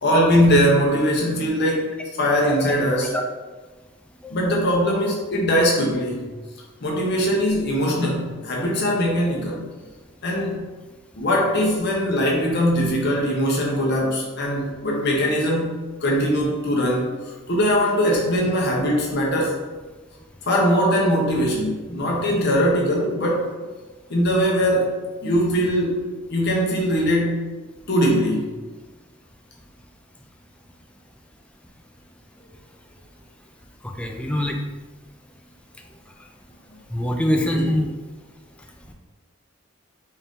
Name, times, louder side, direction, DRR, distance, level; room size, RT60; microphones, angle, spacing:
voice 1, 0.0-1.9 2.2-3.1 4.3-6.3 6.8-9.6 10.2-10.6 11.2-15.7 16.0-17.2 17.5-19.6 20.5-23.5 24.1-24.9 25.2-26.0 26.3-27.4 27.9-28.5 37.3-37.7, equal, 55° left, -2 dB, 0.8 m, -21 dB
voice 2, 34.0-34.6 36.9-37.9, left 1 dB, 5° left, 2 dB, 0.3 m, -23 dB
4.2 x 2.5 x 3.5 m, 1.3 s
head